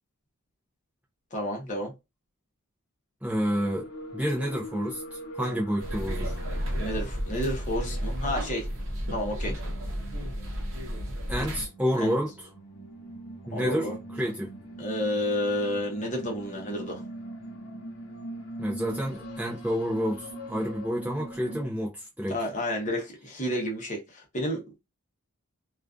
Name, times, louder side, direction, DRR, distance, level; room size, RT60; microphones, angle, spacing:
voice 1, 1.3-1.9 6.8-8.7 9.1-9.6 11.9-12.1 13.5-14.0 14.8-17.0 22.3-24.8, left 1 dB, 35° left, 0.8 m, -31 dB
voice 2, 3.2-3.9 4.1-6.4 11.3-12.5 13.5-14.5 18.6-22.3, equal, 5° right, 0.4 m, -29 dB
sound 1, 3.5-21.7, right 1 dB, 60° left, 0.9 m, -42 dB
sound 2, 5.8-11.7, equal, 60° right, 0.8 m, -32 dB
2.4 x 2.4 x 2.3 m
head